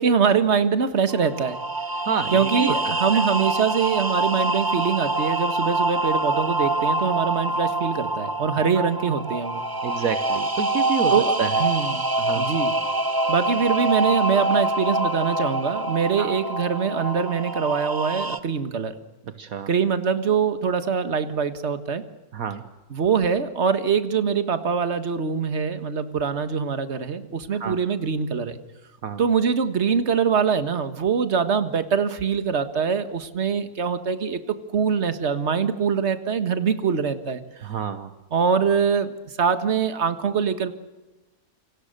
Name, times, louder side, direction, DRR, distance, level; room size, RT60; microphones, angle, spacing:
voice 1, 0.0-1.6 2.3-9.6 11.1-12.1 12.3-12.8 13.3-19.0 19.7-22.0 22.9-28.6 29.2-37.4 38.3-40.7, right 6 dB, 45° right, 10 dB, 1.8 m, -23 dB
sound 1, 1.1-18.4, right 2 dB, 15° right, 0.9 m, -25 dB
voice 2, 2.0-2.8 8.5-8.8 9.8-11.1 11.4-11.5 12.2-12.5 16.2-16.3 19.4-19.7 22.3-22.6 27.6-27.8 29.0-29.2 37.6-38.1, right 7 dB, 70° right, 10 dB, 1.5 m, -28 dB
28.5 x 25.5 x 6.7 m, 1.1 s
omnidirectional pair, 1.6 m